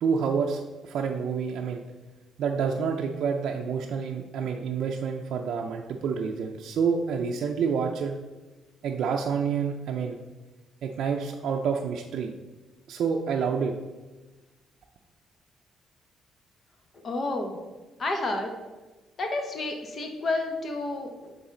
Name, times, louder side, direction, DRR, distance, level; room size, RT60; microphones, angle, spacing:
voice 1, 0.0-1.8 2.4-8.2 8.8-10.2 10.8-12.3 12.9-13.7, right 6 dB, 75° right, 2 dB, 0.4 m, -28 dB
voice 2, 16.9-17.6 18.0-18.5 19.2-21.4, left 2 dB, 45° left, 4 dB, 1.0 m, -30 dB
7.1 x 3.9 x 3.8 m, 1.2 s
cardioid pair, 90°, 0 cm